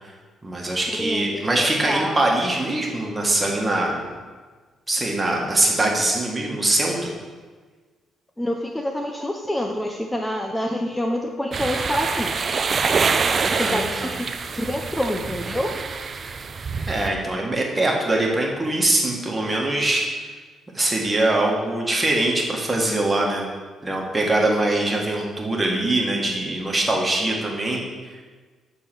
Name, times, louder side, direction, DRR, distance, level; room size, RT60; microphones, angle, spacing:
voice 1, 0.4-4.0 4.9-7.0 13.5-14.1 16.9-20.1 20.7-23.5 23.8-28.2, right 2 dB, 20° right, -1 dB, 1.4 m, -23 dB
voice 2, 1.0-2.2 8.4-12.6 13.4-14.3 14.5-15.7, left 1 dB, 10° left, 3 dB, 0.5 m, -27 dB
sound 1, 11.5-17.1, right 5 dB, 45° right, 0.4 m, -25 dB
7.1 x 3.8 x 5.9 m, 1.4 s
cardioid pair, 90°, 0 cm